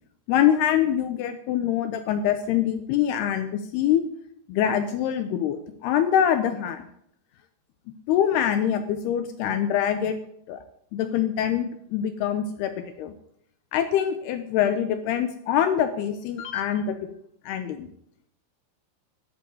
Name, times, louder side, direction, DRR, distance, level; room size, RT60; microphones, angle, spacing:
voice 1, 0.3-4.0 4.5-6.9 8.1-10.2 10.5-10.6 10.9-12.7 13.0-13.1 13.7-17.1 17.5-17.9, left 9 dB, 80° left, 10 dB, 2.5 m, -24 dB
11.0 x 8.3 x 7.8 m, 0.70 s
omnidirectional pair, 5.2 m